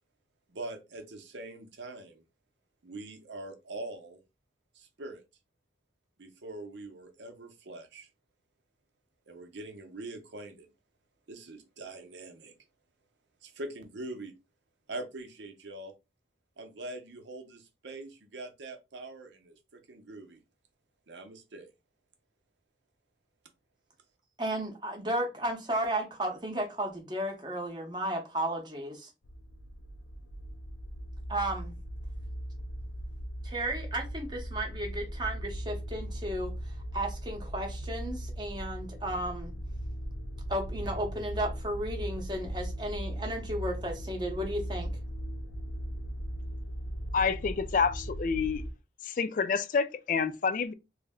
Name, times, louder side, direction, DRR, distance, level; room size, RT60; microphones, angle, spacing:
voice 1, 0.5-2.2 2.8-4.2 4.7-5.2 6.2-8.1 9.3-10.7 11.3-12.5 13.4-14.3 14.9-15.9 16.6-20.4 21.1-21.7, right 2 dB, 80° right, 0.7 m, -43 dB
voice 2, 24.4-29.1 31.3-31.7 33.4-39.5 40.5-44.9, right 1 dB, 25° right, 0.8 m, -34 dB
sound 1, 29.2-48.7, equal, 85° left, 0.6 m, -38 dB
voice 3, 47.1-48.6 49.0-50.7, left 5 dB, 45° left, 0.3 m, -28 dB
3.1 x 2.1 x 3.5 m
head